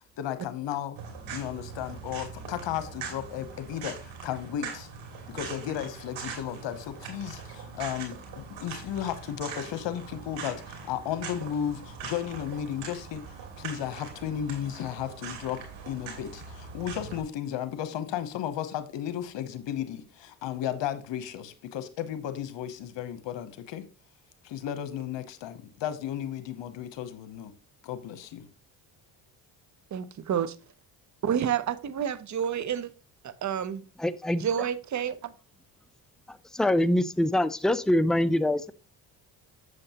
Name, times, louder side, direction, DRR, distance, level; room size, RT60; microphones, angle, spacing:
voice 1, 0.2-1.0 1.3-4.9 5.3-23.9 24.4-27.5 27.8-28.5, left 10 dB, 65° left, 1.0 m, -34 dB
sound 1, 1.0-17.2, right 5 dB, 75° right, 2.8 m, -42 dB
voice 2, 29.9-30.6 31.2-32.9 33.2-33.8 34.3-35.3, right 8 dB, 35° right, 0.8 m, -29 dB
voice 3, 34.0-34.4 36.5-38.7, left 1 dB, ahead, 0.4 m, -24 dB
7.8 x 7.6 x 2.9 m
supercardioid pair, 60°, 48 cm